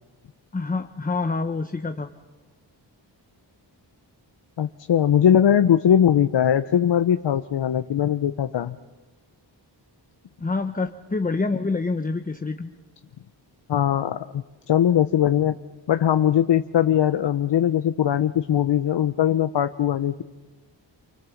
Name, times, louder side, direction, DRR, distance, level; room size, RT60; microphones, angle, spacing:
voice 1, 0.5-2.1 10.4-12.7, left 3 dB, 20° left, 6 dB, 0.9 m, -26 dB
voice 2, 4.6-8.8 13.7-15.5 15.9-20.2, left 9 dB, 65° left, 10 dB, 0.7 m, -20 dB
28.5 x 24.0 x 7.2 m, 1.2 s
wide cardioid pair, 120°, 44 cm